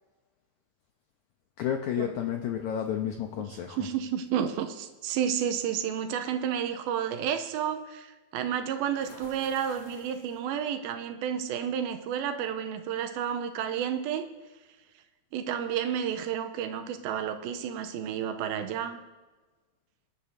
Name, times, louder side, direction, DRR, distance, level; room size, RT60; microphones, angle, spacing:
voice 1, 1.6-3.9, left 9 dB, 85° left, 1.7 m, -31 dB
sound 1, 2.3-2.9 4.3-4.4 4.9-5.2 8.9-10.6, left 2 dB, 50° left, 2.9 m, -53 dB
voice 2, 3.8-14.3 15.3-19.0, right 8 dB, 90° right, 2.5 m, -31 dB
22.5 x 11.0 x 2.7 m
omnidirectional pair, 4.3 m